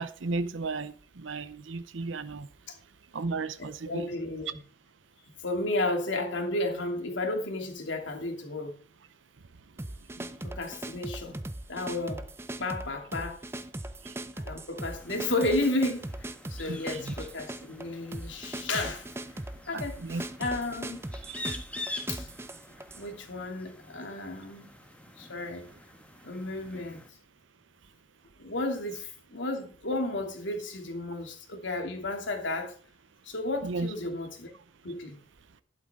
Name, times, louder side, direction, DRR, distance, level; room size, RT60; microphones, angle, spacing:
voice 1, 0.0-2.5 3.1-4.1 10.2-10.3 14.0-14.1 16.7-17.1 19.7-20.2 21.2-21.4 33.6-33.9, right 3 dB, 80° right, 0.7 m, -34 dB
voice 2, 3.6-4.6 5.4-8.8 10.4-11.4 11.7-12.3 12.6-13.4 14.4-19.1 19.7-21.0 22.1-22.3 22.9-24.7 25.2-25.7 26.2-27.0 28.4-32.8 33.2-34.5 34.8-35.2, left 2 dB, 75° left, 2.7 m, -33 dB
sound 1, 9.8-23.1, right 1 dB, 15° right, 0.5 m, -39 dB
sound 2, 14.8-27.1, left 2 dB, 5° left, 1.3 m, -46 dB
12.0 x 11.5 x 3.7 m
head